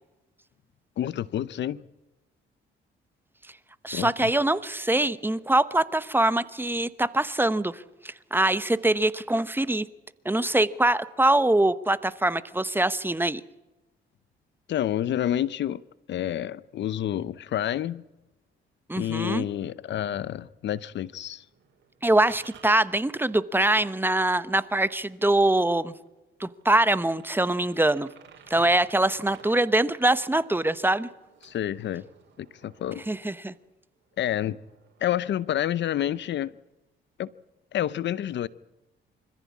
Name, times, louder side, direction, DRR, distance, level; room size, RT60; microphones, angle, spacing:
voice 1, 1.0-1.8 3.9-4.3 14.7-15.8 16.1-18.0 18.9-21.5 31.4-32.0 32.4-33.0 34.2-34.6 35.0-36.6 37.2-37.3 37.7-38.5, left 11 dB, 65° left, 0.7 m, -29 dB
voice 2, 3.8-9.9 10.2-13.4 18.9-19.4 22.0-25.9 26.4-28.1 28.5-31.1 33.1-33.5, right 1 dB, 10° right, 1.0 m, -23 dB
sound 1, 20.9-22.8 24.5-24.6 25.0-25.1 25.7-25.8 26.1-26.2 26.6-29.6 29.9-33.7 34.0-35.1, right 7 dB, 65° right, 5.0 m, -54 dB
25.5 x 15.0 x 8.5 m
cardioid pair, 90°, 20 cm